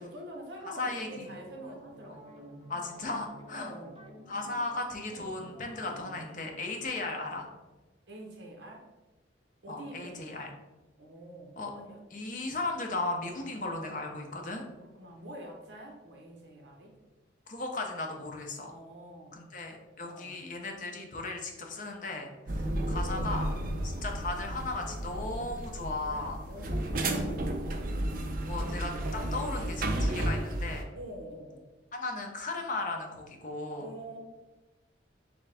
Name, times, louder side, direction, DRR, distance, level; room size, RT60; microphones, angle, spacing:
voice 1, 0.0-2.6 3.5-4.0 8.1-8.9 9.6-10.4 11.0-12.0 14.8-17.0 18.6-19.4 20.0-20.4 22.5-23.5 23.9-24.1 26.1-27.8 30.9-31.6 33.8-34.2, right 1 dB, 70° right, 0 dB, 0.9 m, -46 dB
voice 2, 0.8-1.3 2.7-3.7 4.3-7.5 9.7-10.5 11.6-11.7 12.1-14.6 17.5-18.7 19.3-23.5 23.8-26.4 27.2-27.3 28.4-30.8 31.9-33.9, left 2 dB, 40° left, 2 dB, 0.6 m, -36 dB
sound 1, 1.1-6.2, equal, 30° right, 1.0 m, -51 dB
sound 2, 22.5-30.8, right 1 dB, 45° right, 0.4 m, -33 dB
3.8 x 3.5 x 3.3 m, 1.2 s
head